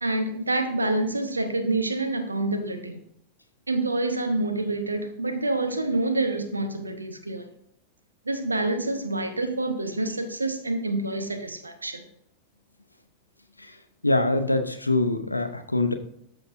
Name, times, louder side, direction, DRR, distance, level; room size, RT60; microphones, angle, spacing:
voice 1, 0.0-3.0 3.7-7.5 8.3-12.0, right 2 dB, 80° right, 8 dB, 1.0 m, -27 dB
voice 2, 14.0-15.9, left 2 dB, 85° left, 7 dB, 0.6 m, -24 dB
13.0 x 5.2 x 2.5 m, 0.73 s
figure-of-eight pair, 90°, 0 cm